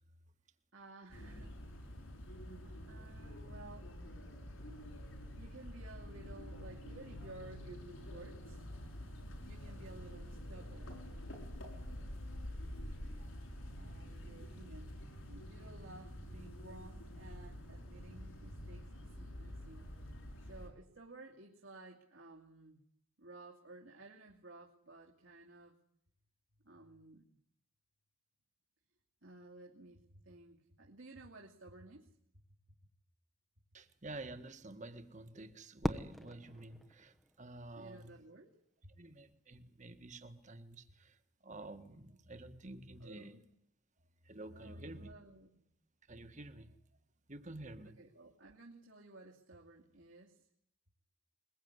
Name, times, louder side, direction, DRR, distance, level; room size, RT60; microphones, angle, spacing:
voice 1, 0.7-1.9 2.3-3.9 5.4-8.7 9.4-11.0 13.8-20.1 20.4-22.9 23.2-25.8 26.6-27.3 29.2-32.2 37.8-38.9 43.0-43.4 44.5-45.6 48.0-50.5, right 2 dB, 65° right, -1 dB, 2.7 m, -55 dB
sound 1, 1.1-20.7, equal, 70° left, 5.8 m, -48 dB
voice 2, 33.7-38.2 39.0-43.4 44.2-45.1 46.1-46.8 47.3-48.0, right 2 dB, 35° right, 10 dB, 1.7 m, -50 dB
Fireworks, 35.8-38.0, equal, ahead, 1.0 m, -41 dB
22.5 x 21.5 x 9.7 m, 0.73 s
head